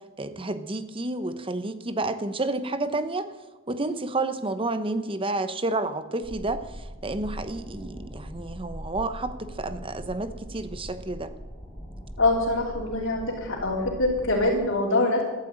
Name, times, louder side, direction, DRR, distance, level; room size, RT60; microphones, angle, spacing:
voice 1, 0.2-3.3 3.7-11.3, right 2 dB, 25° right, 11 dB, 1.0 m, -30 dB
sound 1, 6.2-14.5, equal, 15° left, 6.2 m, -41 dB
voice 2, 12.2-15.2, left 2 dB, 70° left, -4 dB, 3.1 m, -24 dB
13.5 x 12.0 x 8.9 m, 1.2 s
head